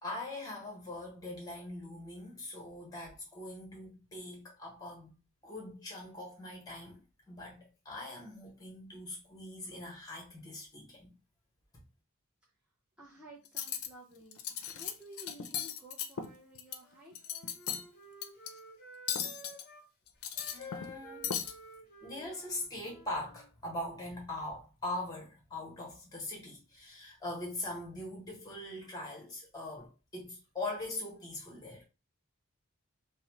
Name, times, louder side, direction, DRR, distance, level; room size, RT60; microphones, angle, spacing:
voice 1, 0.0-5.1 5.4-7.0 7.3-11.1 20.5-21.3 22.0-31.8, left 1 dB, 15° left, 1.0 m, -42 dB
voice 2, 13.0-17.5, right 1 dB, 5° right, 0.5 m, -54 dB
Cutlery silverware, 13.5-13.9 14.3-14.9 15.2-16.8 17.1-17.8 18.2-18.5 19.1-19.6 20.1-21.0 21.2-21.5, left 8 dB, 75° left, 0.4 m, -37 dB
Wind instrument woodwind instrument, 16.7-19.9 20.3-23.5, left 1 dB, 45° left, 0.8 m, -52 dB
3.0 x 2.0 x 2.9 m
head